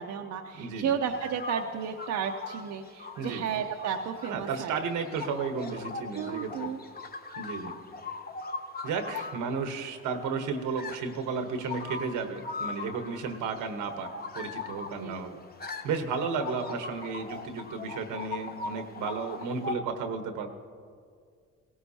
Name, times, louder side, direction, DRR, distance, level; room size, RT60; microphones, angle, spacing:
voice 1, 0.0-4.8 6.1-6.8 15.0-15.4, right 7 dB, 70° right, 3 dB, 0.7 m, -33 dB
voice 2, 0.6-1.0 3.2-3.4 4.3-6.7 7.4-7.7 8.8-15.3 15.8-20.5, right 5 dB, 90° right, 7 dB, 1.1 m, -33 dB
sound 1, 1.0-19.8, left 4 dB, 30° left, 0.9 m, -41 dB
17.0 x 16.0 x 2.8 m, 2.1 s
cardioid pair, 90°, 30 cm